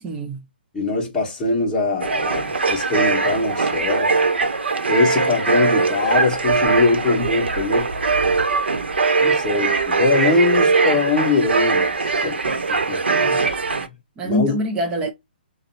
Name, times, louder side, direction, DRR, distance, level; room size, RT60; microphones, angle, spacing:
voice 1, 0.0-0.4 13.1-13.5 14.2-15.1, right 1 dB, 15° right, 0.5 m, -25 dB
voice 2, 0.7-4.2 4.9-7.9 9.2-12.3 12.7-13.2 14.2-14.6, left 3 dB, 5° left, 1.8 m, -22 dB
sound 1, 2.0-13.9, right 4 dB, 90° right, 0.9 m, -21 dB
6.3 x 2.2 x 2.8 m
hypercardioid pair, 150°, 6 cm